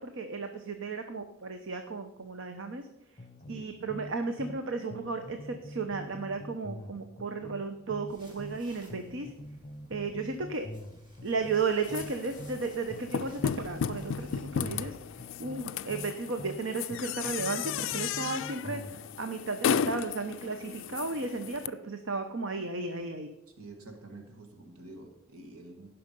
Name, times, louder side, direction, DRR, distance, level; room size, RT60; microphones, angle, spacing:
voice 1, 0.0-2.9 3.5-9.3 9.9-10.7 11.2-15.0 15.4-23.3, right 4 dB, 60° right, 7 dB, 0.8 m, -34 dB
sound 1, 3.2-4.6 4.9-8.6 8.9-12.6 12.9-16.6 16.9-19.0, left 1 dB, 30° left, 0.8 m, -45 dB
sound 2, 8.1-14.4, equal, 20° right, 2.9 m, -57 dB
sound 3, 11.8-21.7, left 7 dB, 60° left, 0.3 m, -35 dB
voice 2, 23.6-25.9, right 2 dB, 85° right, 3 dB, 1.9 m, -48 dB
17.5 x 5.8 x 5.3 m, 0.88 s
head